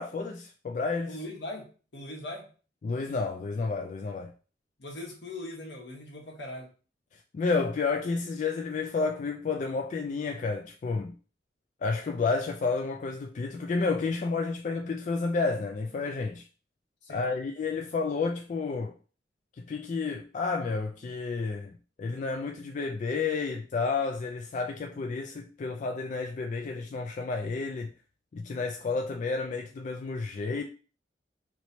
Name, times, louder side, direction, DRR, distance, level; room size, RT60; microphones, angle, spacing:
voice 1, 0.0-1.2 2.8-4.3 7.1-11.1 11.8-16.5 17.1-18.9 19.6-27.9 28.3-30.6, left 4 dB, 45° left, 0.3 m, -31 dB
voice 2, 1.1-1.7 1.9-2.5 4.8-6.7 17.0-17.2, left 1 dB, 75° left, 1.3 m, -40 dB
3.1 x 3.0 x 4.1 m
head